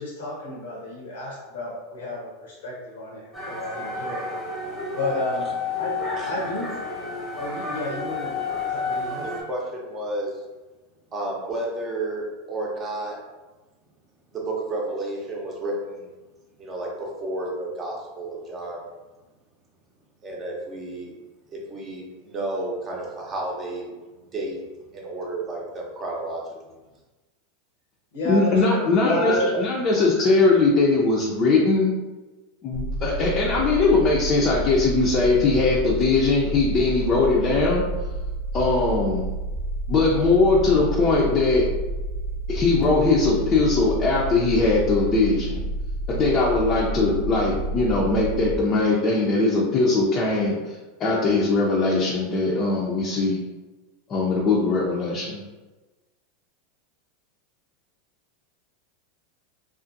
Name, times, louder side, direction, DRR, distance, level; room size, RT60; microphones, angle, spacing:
voice 1, 0.0-4.2 4.9-5.5 5.7-6.0 6.2-6.7 7.4-8.4 8.7-9.3 28.1-28.9, left 2 dB, 80° left, -4 dB, 0.7 m, -32 dB
sound 1, 3.3-9.4, left 3 dB, 5° right, 0.9 m, -30 dB
voice 2, 9.2-10.3 11.1-13.2 14.3-16.1 16.6-18.8 20.2-21.1 21.5-23.9 24.3-24.6 24.9-26.4 26.7-26.8, right 2 dB, 30° right, -2 dB, 0.7 m, -31 dB
voice 3, 28.2-31.9 32.6-37.8 38.5-39.3 39.9-41.6 42.5-45.6 46.1-50.6 51.0-53.4 54.1-55.4, left 3 dB, 35° left, -4 dB, 0.5 m, -20 dB
sound 2, 32.7-48.6, right 1 dB, 75° right, 0.5 m, -30 dB
2.5 x 2.4 x 2.5 m, 1.2 s
hypercardioid pair, 115°, 0 cm